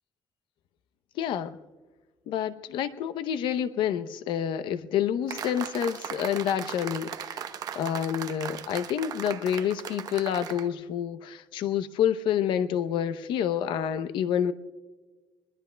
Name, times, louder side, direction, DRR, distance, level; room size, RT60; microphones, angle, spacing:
voice 1, 1.2-1.6 2.3-7.4 7.8-14.5, left 9 dB, 85° left, 0.7 m, -28 dB
sound 1, 5.3-10.7, right 8 dB, 50° right, 0.8 m, -38 dB
22.0 x 21.0 x 2.2 m
cardioid pair, 145°, 8 cm